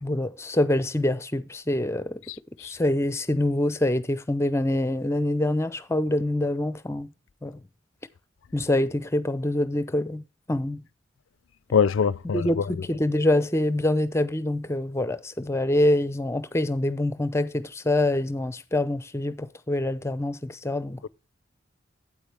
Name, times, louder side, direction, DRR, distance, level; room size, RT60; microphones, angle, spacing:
voice 1, 0.0-2.2 2.6-7.1 7.4-7.6 8.5-10.8 12.3-21.1, left 1 dB, 15° left, 0.5 m, -25 dB
voice 2, 11.7-12.4, left 6 dB, 90° left, 0.4 m, -21 dB
8.6 x 8.5 x 3.4 m
head